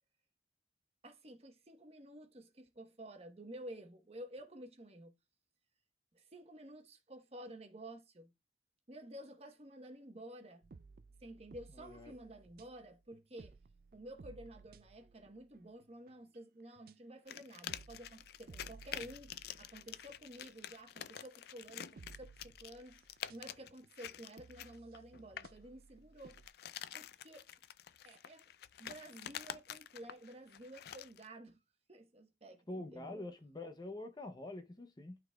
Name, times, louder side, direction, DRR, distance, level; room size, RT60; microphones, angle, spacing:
voice 1, 1.0-5.1 6.1-8.3 8.9-10.7 11.2-13.6 13.9-23.0 23.3-26.4 26.9-27.5 28.0-28.5 28.8-31.6 31.9-33.2, right 1 dB, 35° right, 1.1 m, -52 dB
sound 1, 10.6-16.4 16.7-16.9 17.4-21.2 21.7-26.5, right 4 dB, 55° right, 0.4 m, -59 dB
voice 2, 11.8-12.1 32.7-35.2, left 2 dB, 25° left, 0.6 m, -46 dB
sound 2, 17.3-25.6 26.2-31.3, left 10 dB, 60° left, 0.3 m, -48 dB
11.5 x 4.0 x 2.3 m
head